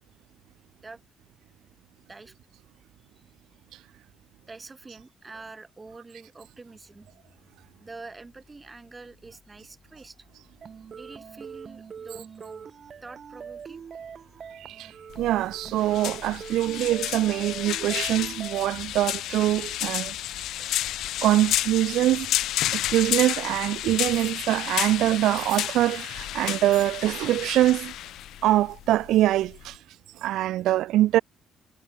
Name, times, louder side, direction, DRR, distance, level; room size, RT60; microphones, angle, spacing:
voice 1, 4.5-7.1 7.8-10.2 10.9-12.7 13.0-13.8, right 3 dB, 25° right, 1.5 m, -45 dB
sound 1, 6.7-26.6, left 4 dB, 30° left, 5.8 m, -62 dB
sound 2, 10.6-18.6, right 7 dB, 50° right, 3.8 m, -43 dB
voice 2, 14.6-20.1 21.2-22.3 22.7-27.9 28.4-29.8 30.2-31.2, right 14 dB, 85° right, 0.3 m, -24 dB
sound 3, 15.1-29.8, left 13 dB, 85° left, 0.5 m, -31 dB
cardioid pair, 90°, 0 cm